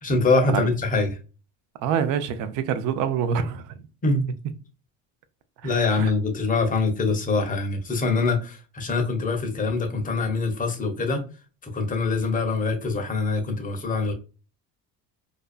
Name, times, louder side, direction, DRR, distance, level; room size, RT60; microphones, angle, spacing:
voice 1, 0.0-1.1 4.0-4.3 5.6-11.2 11.6-14.1, left 3 dB, 20° left, 0.7 m, -24 dB
voice 2, 1.8-3.7 5.6-6.1, right 7 dB, 55° right, 0.5 m, -26 dB
2.6 x 2.2 x 2.3 m
supercardioid pair, 110°, 37 cm